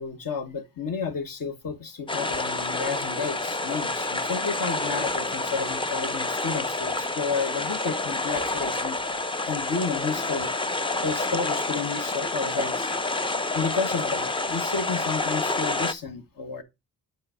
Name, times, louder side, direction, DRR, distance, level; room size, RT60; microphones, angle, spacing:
voice 1, 0.0-9.0 9.5-10.5 11.0-12.9 13.5-16.6, left 5 dB, 55° left, 1.4 m, -31 dB
sound 1, 2.1-15.9, left 2 dB, 15° left, 0.5 m, -28 dB
7.7 x 4.7 x 4.9 m
cardioid pair, 85°, 40 cm